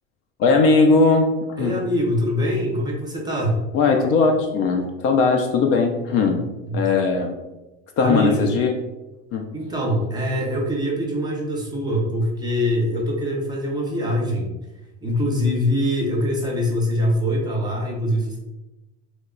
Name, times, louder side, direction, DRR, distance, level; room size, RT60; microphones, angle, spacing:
voice 1, 0.4-1.8 3.7-6.4 6.7-7.3 8.0-8.7 9.3-9.4, left 4 dB, 45° left, 4 dB, 0.4 m, -19 dB
voice 2, 1.6-3.6 6.7-6.8 8.0-8.4 9.5-14.5 15.0-18.4, equal, 15° right, -1 dB, 0.6 m, -23 dB
3.0 x 2.2 x 3.6 m, 1.0 s
supercardioid pair, 135°, 32 cm